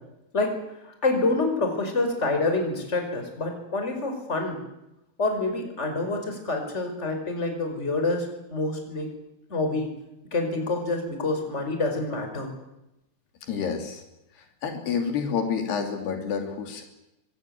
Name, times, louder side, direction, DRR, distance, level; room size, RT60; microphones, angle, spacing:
voice 1, 0.8-4.6 5.2-9.1 9.5-9.9 10.3-12.5, left 2 dB, 15° left, 4 dB, 5.1 m, -27 dB
voice 2, 13.5-14.0 14.6-16.8, left 6 dB, 75° left, 5 dB, 5.0 m, -28 dB
24.5 x 19.5 x 9.4 m, 0.89 s
omnidirectional pair, 4.7 m